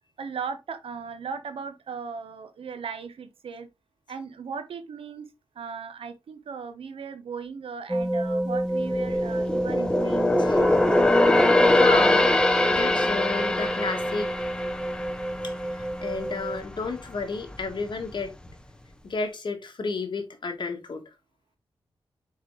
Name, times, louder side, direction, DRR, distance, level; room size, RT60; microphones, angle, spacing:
voice 1, 0.2-3.7 4.1-5.3 5.5-10.4, right 6 dB, 85° right, 1.0 m, -37 dB
sound 1, 7.9-16.6, right 1 dB, 5° right, 0.3 m, -29 dB
sound 2, 8.7-16.3 16.6-16.9 17.4-18.1 18.5-18.6, left 2 dB, 10° left, 0.8 m, -23 dB
voice 2, 10.4-14.3 15.4-18.3 19.0-21.0, left 4 dB, 55° left, 1.7 m, -33 dB
7.4 x 4.3 x 3.3 m
wide cardioid pair, 105°, 9 cm